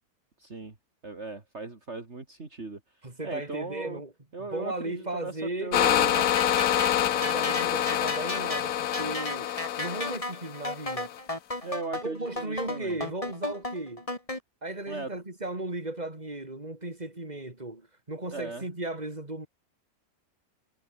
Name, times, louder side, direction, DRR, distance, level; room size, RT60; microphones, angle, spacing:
voice 1, 0.4-0.8 1.0-2.8 3.2-4.0 4.3-6.3 7.6-7.7 9.0-9.4 11.6-13.0 14.9-15.1 18.3-18.7, right 3 dB, 50° right, 3.3 m, -38 dB
voice 2, 3.0-4.1 4.4-5.8 7.1-9.5 9.8-11.1 12.0-14.1 14.6-19.5, right 2 dB, 25° right, 4.4 m, -36 dB
sound 1, 5.7-11.2, left 11 dB, 80° left, 1.4 m, -27 dB
sound 2, 5.8-14.4, left 1 dB, 20° left, 3.7 m, -34 dB
omnidirectional pair, 1.6 m